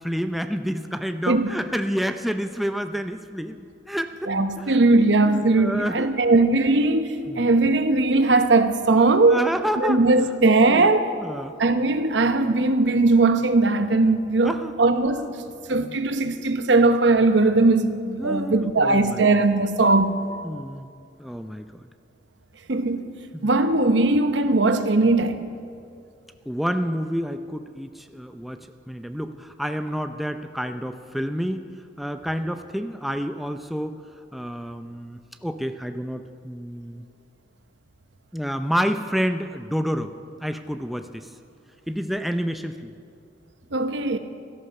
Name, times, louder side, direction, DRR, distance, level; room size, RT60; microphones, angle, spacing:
voice 1, 0.0-3.6 3.9-4.3 4.6-6.2 7.3-7.5 9.3-10.0 10.6-10.9 11.2-11.6 14.4-14.7 15.7-16.1 18.2-19.4 20.4-20.9 21.2-21.9 23.3-23.5 26.5-34.0 34.3-37.1 38.3-40.1 40.4-41.3 41.9-42.9, equal, ahead, 0.5 m, -29 dB
voice 2, 4.3-9.4 9.8-11.1 11.6-15.4 15.7-20.1 22.7-23.1 23.4-25.5 43.7-44.2, right 3 dB, 80° right, 0.9 m, -19 dB
16.5 x 13.0 x 5.9 m
head